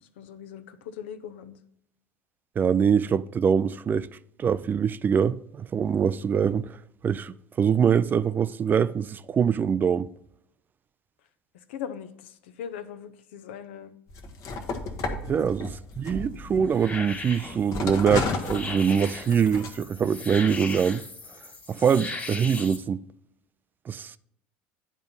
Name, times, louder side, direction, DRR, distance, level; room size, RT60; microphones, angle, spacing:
voice 1, 0.2-1.6 11.7-12.1 12.6-13.9 15.3-15.5, left 8 dB, 75° left, 0.6 m, -39 dB
voice 2, 2.6-4.1 4.4-6.7 7.0-10.1 15.2-21.0 21.7-23.0 23.9-24.2, right 7 dB, 30° right, 0.4 m, -24 dB
sound 1, 14.1-17.2 17.7-19.7, left 3 dB, 50° left, 1.2 m, -32 dB
sound 2, 15.9-22.8, left 3 dB, 25° left, 2.0 m, -38 dB
9.6 x 4.0 x 5.5 m
hypercardioid pair, 75°, 6 cm